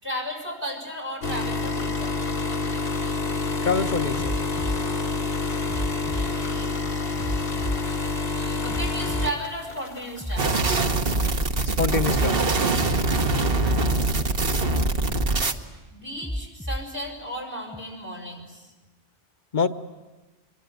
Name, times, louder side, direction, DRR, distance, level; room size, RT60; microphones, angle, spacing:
voice 1, 0.0-2.2 5.8-6.8 8.3-10.6 13.5-14.2 15.8-18.7, equal, 85° right, 2 dB, 5.7 m, -35 dB
sound 1, 1.2-10.4 10.8-11.1 12.0-12.1, left 3 dB, 65° left, 1.6 m, -28 dB
voice 2, 3.6-4.3 11.8-12.6 19.5-19.7, left 4 dB, 45° left, 8 dB, 1.2 m, -25 dB
sound 2, 4.2-4.8 5.7-6.3 7.2-7.8 8.7-9.3 10.2-10.8 11.7-12.3 13.2-13.8 14.7-15.3 16.2-16.8 17.7-17.8, equal, ahead, 0.8 m, -30 dB
sound 3, 10.4-15.5, right 2 dB, 60° right, 1.5 m, -23 dB
25.5 x 22.5 x 9.5 m, 1.2 s
omnidirectional pair, 1.1 m